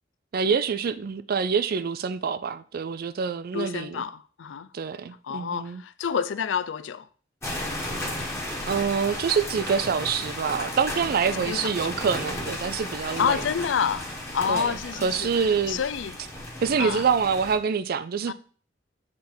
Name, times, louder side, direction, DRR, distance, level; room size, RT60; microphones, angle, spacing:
voice 1, 0.3-4.0 4.7-5.8 8.7-13.4 14.5-15.8 16.6-18.3, right 6 dB, 50° right, 0.4 m, -26 dB
voice 2, 3.5-4.7 5.2-7.1 11.5-11.7 13.0-16.1 16.8-17.0 18.3-18.4, left 7 dB, 70° left, 0.4 m, -28 dB
sound 1, 7.4-17.6, left 1 dB, 15° left, 1.3 m, -34 dB
7.5 x 3.6 x 4.4 m
head